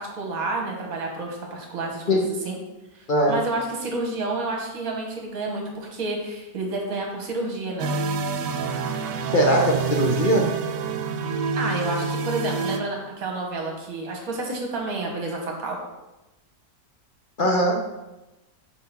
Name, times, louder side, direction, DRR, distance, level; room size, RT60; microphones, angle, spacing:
voice 1, 0.0-2.6 2.9-7.9 11.6-15.8, right 2 dB, 60° right, 0 dB, 1.5 m, -30 dB
voice 2, 3.1-3.4 9.3-10.5 17.4-17.8, equal, 60° left, 0 dB, 0.5 m, -20 dB
sound 1, 7.8-12.8, right 5 dB, 80° right, 1.2 m, -27 dB
5.0 x 3.7 x 5.6 m, 1.0 s
omnidirectional pair, 1.8 m